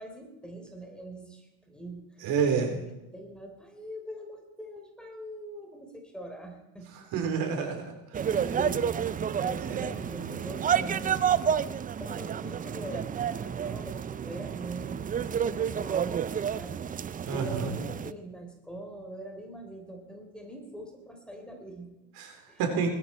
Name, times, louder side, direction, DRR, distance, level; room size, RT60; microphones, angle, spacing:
voice 1, 0.0-2.2 2.5-6.9 8.2-9.0 9.4-11.6 12.0-14.0 14.2-16.8 17.3-22.1 22.5-22.6, right 1 dB, ahead, 2 dB, 3.5 m, -42 dB
voice 2, 2.2-2.7 6.9-7.9 8.2-8.3 9.7-9.9 17.3-17.7 22.2-22.9, right 6 dB, 75° right, 4 dB, 3.9 m, -29 dB
sound 1, 8.1-18.1, right 8 dB, 25° right, 0.4 m, -30 dB
20.0 x 13.5 x 4.4 m, 0.97 s
cardioid pair, 125°, 37 cm